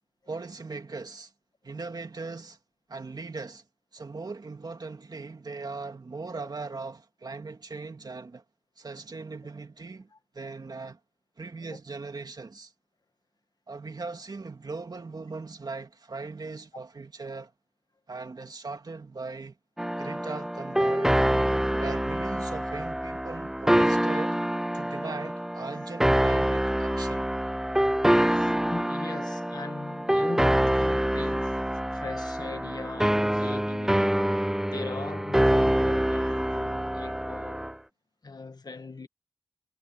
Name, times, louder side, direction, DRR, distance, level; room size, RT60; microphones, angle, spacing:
voice 1, 0.3-1.3 1.6-2.6 2.9-3.6 3.9-8.4 8.8-10.1 10.3-11.0 11.4-12.7 13.7-17.5 18.1-19.6 20.0-21.2 21.8-24.4 24.7-27.3, right 3 dB, 85° right, 2.5 m, -39 dB
sound 1, 19.8-37.7, equal, 5° right, 0.5 m, -26 dB
voice 2, 28.3-31.6 31.9-34.3 34.7-37.6 38.2-39.1, left 4 dB, 85° left, 1.7 m, -40 dB
wide cardioid pair, 55°, 7 cm